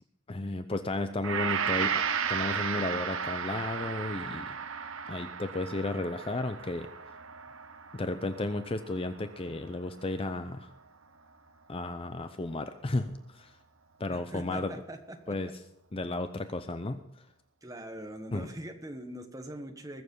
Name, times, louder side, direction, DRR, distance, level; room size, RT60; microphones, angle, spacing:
voice 1, 0.3-2.0 2.3-4.6 5.1-6.9 7.9-10.7 11.7-13.5 14.0-14.7 15.3-15.5 15.9-17.3 18.3-18.5, left 2 dB, 25° left, 9 dB, 0.5 m, -33 dB
Gong, 1.2-9.7 10.0-10.2, right 7 dB, 65° right, 0.9 m, -34 dB
voice 2, 14.1-15.3 17.6-20.0, right 1 dB, 15° right, 5 dB, 1.3 m, -42 dB
21.0 x 7.2 x 5.4 m, 0.80 s
head